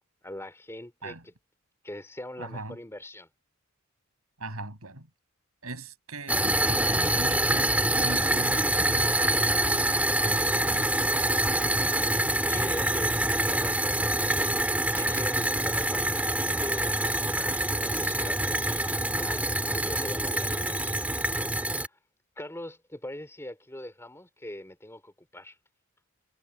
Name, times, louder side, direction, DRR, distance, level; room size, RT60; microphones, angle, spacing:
voice 1, 0.2-1.3 1.8-3.3 12.5-18.8 19.2-21.0 21.8-22.0 22.4-25.6, left 1 dB, 10° left, 3.7 m, -42 dB
voice 2, 2.4-2.8 4.4-5.1 5.6-9.1 10.2-10.9, right 2 dB, 90° right, 7.5 m, -39 dB
sound 1, 6.3-21.9, right 1 dB, 5° right, 2.8 m, -26 dB
head